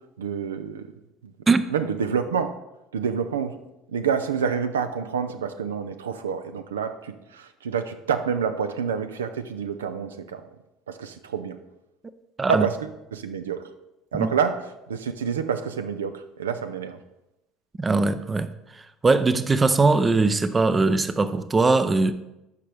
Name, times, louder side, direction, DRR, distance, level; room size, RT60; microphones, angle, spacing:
voice 1, 0.2-0.9 1.2-1.3 1.7-2.6 2.9-3.6 3.9-10.4 10.9-11.6 12.5-13.7 14.1-17.0, right 7 dB, 80° right, 10 dB, 0.4 m, -28 dB
voice 2, 17.8-18.5 19.0-22.1, right 3 dB, 20° right, 13 dB, 0.5 m, -20 dB
12.0 x 5.1 x 3.4 m, 0.92 s
figure-of-eight pair, 65°, 0 cm